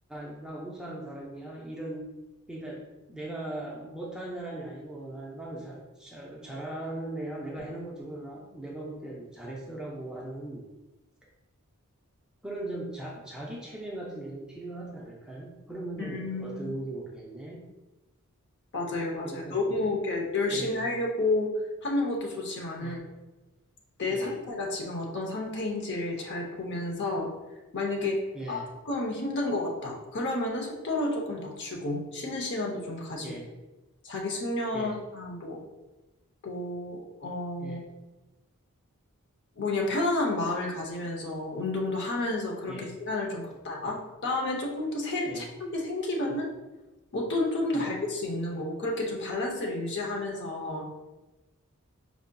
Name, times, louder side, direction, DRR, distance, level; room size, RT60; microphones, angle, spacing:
voice 1, 0.1-2.1 2.5-2.8 3.1-10.7 12.4-17.6 19.2-20.0 20.4-20.8 22.8-23.0 24.1-24.4 28.3-28.7 33.2-33.5 34.7-35.0 37.6-37.8 42.7-42.9 45.3-45.5 47.7-47.9, right 1 dB, 5° right, -4 dB, 0.4 m, -39 dB
voice 2, 16.0-16.6 18.7-21.5 21.8-23.0 24.0-27.3 27.7-28.2 28.5-28.6 28.9-33.3 34.0-35.6 36.4-37.8 39.6-46.5 47.1-50.9, left 2 dB, 50° left, 0 dB, 0.6 m, -31 dB
4.7 x 2.6 x 2.2 m, 1.1 s
head